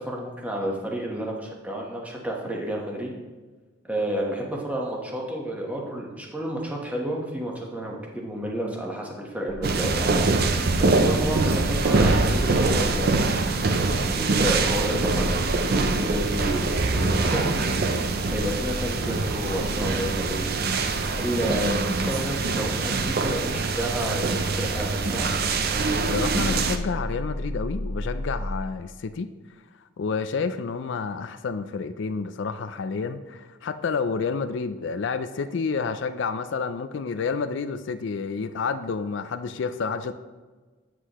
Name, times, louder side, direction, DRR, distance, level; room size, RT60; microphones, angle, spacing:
voice 1, 0.0-3.1 3.8-10.1 10.8-13.3 14.0-17.9 18.3-20.5 21.2-25.3, right 1 dB, 5° right, -1 dB, 1.1 m, -31 dB
sound 1, 9.6-26.8, right 3 dB, 50° right, 0.5 m, -24 dB
sound 2, 21.5-28.6, left 1 dB, 35° left, 0.7 m, -36 dB
voice 2, 26.1-29.3 30.0-40.1, left 5 dB, 65° left, 10 dB, 0.4 m, -29 dB
8.2 x 7.6 x 3.0 m, 1.3 s
head